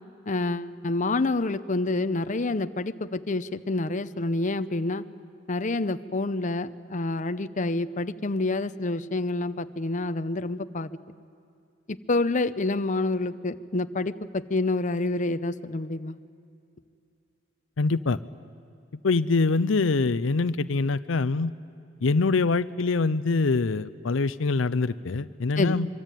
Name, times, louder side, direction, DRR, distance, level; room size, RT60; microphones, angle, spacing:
voice 1, 0.3-5.0 5.5-10.9 12.1-16.2 25.6-25.8, left 2 dB, 40° left, 12 dB, 0.7 m, -28 dB
voice 2, 17.8-18.2 19.0-21.5 22.0-25.9, left 3 dB, 75° left, 14 dB, 0.6 m, -24 dB
25.5 x 24.0 x 9.1 m, 2.6 s
head